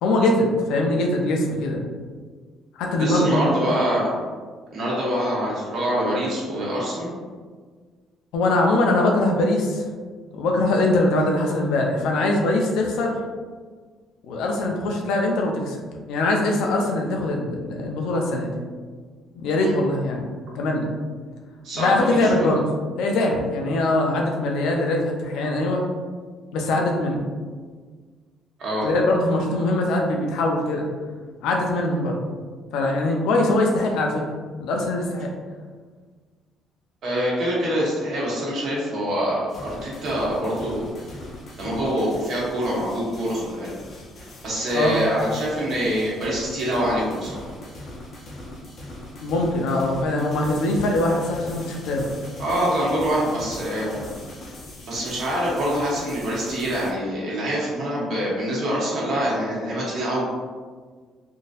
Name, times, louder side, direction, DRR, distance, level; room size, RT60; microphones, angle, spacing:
voice 1, 0.0-1.9 2.8-3.4 8.3-9.8 10.3-13.2 14.2-15.8 16.1-18.5 19.3-20.9 21.7-22.7 23.0-25.8 26.5-27.2 28.8-30.8 31.4-32.2 32.7-34.2 34.6-35.3 44.7-45.0 49.2-52.1, left 2 dB, 90° left, 1 dB, 0.6 m, -22 dB
voice 2, 3.0-4.1 4.7-7.1 19.5-19.7 21.6-22.5 28.6-28.9 37.0-40.9 41.6-43.7 44.4-47.5 52.4-54.0 54.9-60.2, equal, 50° right, -6 dB, 1.2 m, -25 dB
sound 1, 39.5-56.9, left 1 dB, 35° left, 0.7 m, -40 dB
3.7 x 2.6 x 2.5 m, 1.5 s
cardioid pair, 165°, 0 cm